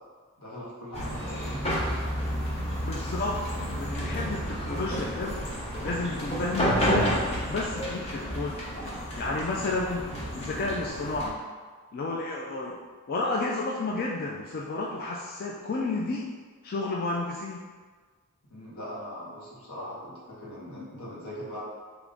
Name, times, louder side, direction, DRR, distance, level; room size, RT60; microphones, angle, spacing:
voice 1, 0.4-1.7 18.5-21.6, equal, 85° left, -7 dB, 1.4 m, -40 dB
sound 1, 0.9-11.3, equal, 30° left, 0.8 m, -31 dB
voice 2, 2.8-3.4 3.7-5.4 5.8-8.6 8.9-10.1 10.3-11.4 11.9-12.8 13.1-16.3 16.6-17.6, left 3 dB, 45° left, -2 dB, 0.3 m, -31 dB
3.4 x 3.0 x 3.7 m, 1.5 s
head